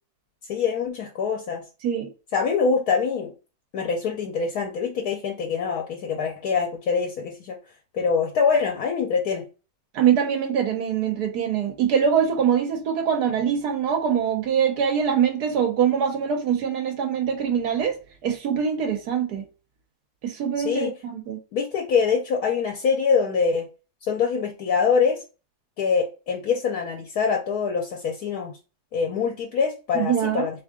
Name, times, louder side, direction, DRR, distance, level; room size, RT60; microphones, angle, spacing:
voice 1, 0.5-1.6 2.3-3.3 3.7-7.5 7.9-9.4 20.6-20.9 21.5-23.7 24.0-25.2 25.8-28.5 28.9-30.6, left 5 dB, 75° left, 1.2 m, -24 dB
voice 2, 9.9-18.0 18.2-19.4 20.2-21.4 29.9-30.5, right 8 dB, 85° right, 1.3 m, -23 dB
3.6 x 3.1 x 3.5 m
omnidirectional pair, 1.6 m